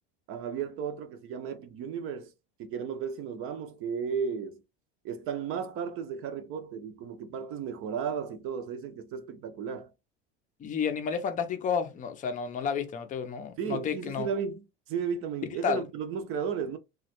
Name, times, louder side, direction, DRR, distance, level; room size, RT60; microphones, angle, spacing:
voice 1, 0.3-2.3 2.6-4.6 5.0-9.9 13.6-16.8, right 7 dB, 40° right, 0.6 m, -34 dB
voice 2, 10.6-14.3 15.6-15.8, left 6 dB, 25° left, 0.5 m, -31 dB
3.0 x 2.3 x 2.9 m
supercardioid pair, 140°, 32 cm